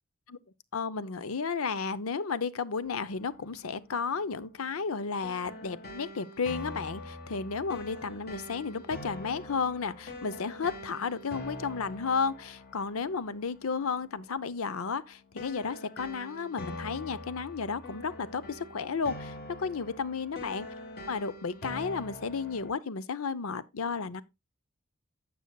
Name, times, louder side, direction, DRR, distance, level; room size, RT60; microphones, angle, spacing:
voice 1, 0.7-20.6 21.1-24.2, left 5 dB, 80° left, 0.7 m, -33 dB
sound 1, 2.8-22.7, left 1 dB, 45° left, 1.7 m, -45 dB
12.0 x 7.8 x 2.3 m
head